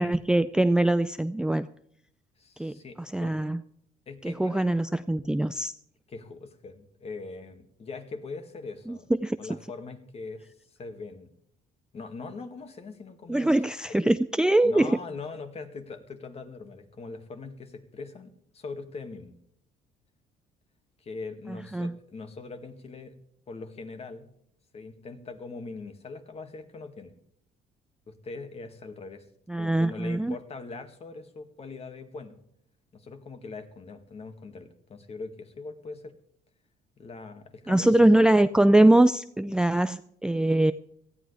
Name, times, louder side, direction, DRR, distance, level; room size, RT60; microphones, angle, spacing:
voice 1, 0.0-1.7 2.6-3.6 4.2-5.7 8.9-9.6 13.3-15.0 21.5-21.9 29.5-30.4 37.7-40.7, right 1 dB, 5° right, 13 dB, 0.4 m, -23 dB
voice 2, 2.4-3.3 4.1-4.7 6.1-9.1 9.4-10.5 10.8-11.3 11.9-13.5 13.9-14.0 14.6-19.4 21.0-23.2 23.5-24.3 24.7-27.1 28.1-29.2 29.5-32.4 32.9-36.1 37.0-38.1, left 3 dB, 35° left, 7 dB, 2.2 m, -41 dB
18.5 x 14.0 x 3.4 m, 0.70 s
cardioid pair, 110°, 17 cm